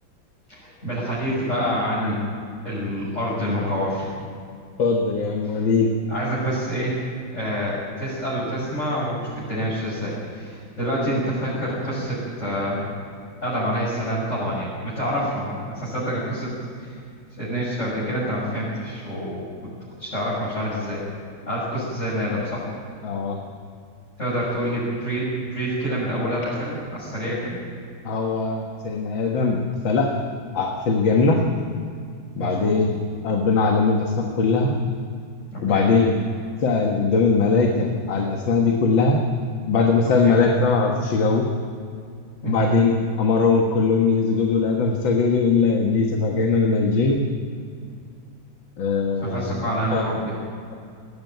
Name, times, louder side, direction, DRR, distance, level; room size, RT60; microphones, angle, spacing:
voice 1, 0.5-2.2 2.6-4.1 5.4-5.7 6.1-7.0 7.3-12.8 13.4-16.5 16.8-16.9 17.4-19.7 20.0-21.0 21.5-22.6 24.2-27.6 32.4-32.7 35.5-35.9 40.2-40.4 42.4-42.7 49.2-50.3, equal, 35° left, -9 dB, 7.0 m, -27 dB
voice 2, 4.8-5.9 23.0-23.4 28.0-30.1 30.5-31.4 32.4-33.0 33.2-34.8 35.6-36.1 36.6-39.2 39.7-41.5 42.4-47.2 48.8-50.1, left 4 dB, 80° left, 1 dB, 2.3 m, -20 dB
20.0 x 15.5 x 9.3 m, 2.3 s
omnidirectional pair, 2.1 m